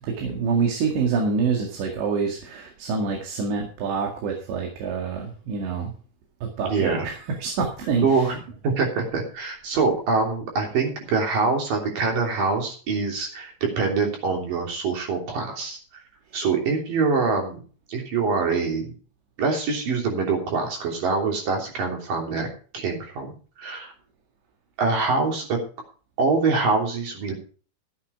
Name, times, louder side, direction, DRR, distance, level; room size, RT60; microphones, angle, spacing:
voice 1, 0.0-5.9 6.4-8.3, right 5 dB, 90° right, 1 dB, 4.3 m, -26 dB
voice 2, 6.6-7.1 8.0-8.4 8.6-15.8 16.3-17.6 17.9-18.9 19.4-22.5 22.7-23.3 23.6-23.9 24.8-25.6 26.2-27.3, right 4 dB, 55° right, 1 dB, 4.7 m, -24 dB
14.5 x 8.7 x 4.7 m, 0.40 s
omnidirectional pair, 4.9 m